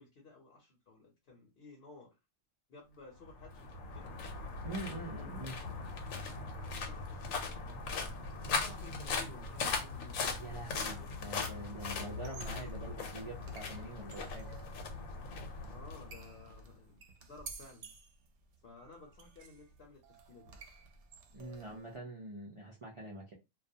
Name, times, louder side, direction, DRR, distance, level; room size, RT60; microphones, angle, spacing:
voice 1, 0.0-2.1 2.7-4.1 4.8-5.4 5.7-5.9 6.7-10.2 11.0-11.2 15.7-17.9 18.6-20.6, left 3 dB, 55° left, 0.8 m, -55 dB
sound 1, 3.2-16.6, left 4 dB, 85° left, 1.0 m, -39 dB
voice 2, 4.6-5.6 10.4-14.5 21.3-23.3, right 2 dB, 50° right, 0.3 m, -45 dB
sound 2, 12.2-22.0, right 4 dB, 70° right, 0.8 m, -54 dB
2.3 x 2.2 x 2.7 m
omnidirectional pair, 1.3 m